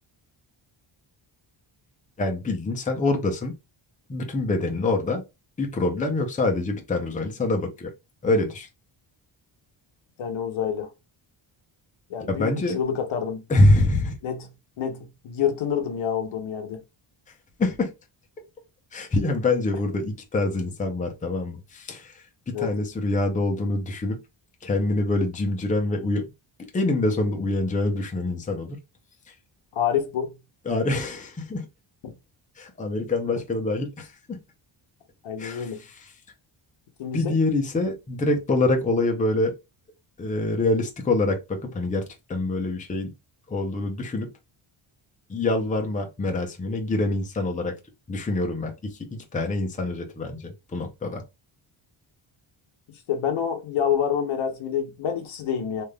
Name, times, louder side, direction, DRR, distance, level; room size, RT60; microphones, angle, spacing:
voice 1, 2.2-3.5 4.1-5.2 5.6-7.9 8.2-8.7 12.3-12.8 13.5-14.2 17.6-17.9 18.9-24.2 24.6-26.2 26.7-28.8 29.3-29.4 30.7-31.7 32.6-34.4 35.4-36.1 37.1-39.5 40.2-43.1 43.5-44.3 45.3-47.7 48.1-51.2, left 2 dB, 15° left, 0.5 m, -25 dB
voice 2, 10.2-10.9 12.1-13.4 14.2-14.5 14.8-16.8 22.5-22.7 29.7-30.3 32.0-32.1 35.2-35.8 37.0-37.4 53.1-55.8, left 8 dB, 75° left, 0.9 m, -27 dB
3.3 x 2.6 x 2.2 m
wide cardioid pair, 135°, 49 cm